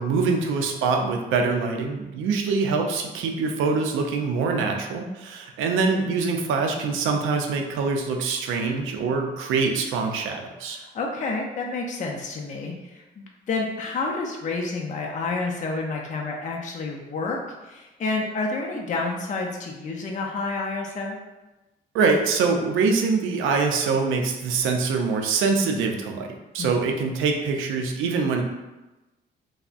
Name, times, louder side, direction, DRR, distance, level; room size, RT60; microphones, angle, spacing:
voice 1, 0.0-10.8 21.9-26.3 26.5-28.4, right 4 dB, 85° right, 3 dB, 0.4 m, -24 dB
voice 2, 10.7-17.4 17.6-21.2 26.6-26.7, left 3 dB, 40° left, 0 dB, 0.4 m, -29 dB
3.3 x 2.0 x 2.5 m, 1.1 s
cardioid pair, 90°, 20 cm